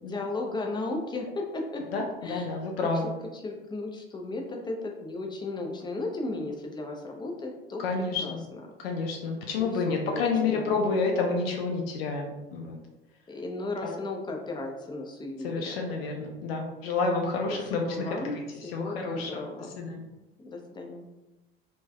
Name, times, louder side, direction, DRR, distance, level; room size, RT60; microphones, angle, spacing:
voice 1, 0.0-1.8 2.2-2.5 2.8-2.9 3.3-7.8 8.2-8.3 9.6-11.1 13.3-15.8 17.5-18.4 18.6-19.8 20.4-21.1, left 2 dB, 15° left, 1 dB, 0.4 m, -35 dB
voice 2, 1.9-3.1 7.8-8.4 8.8-12.8 13.8-14.0 15.4-19.4 19.8-20.1, left 4 dB, 75° left, 1 dB, 0.5 m, -29 dB
3.2 x 2.1 x 2.2 m, 1.0 s
figure-of-eight pair, 70°, 30 cm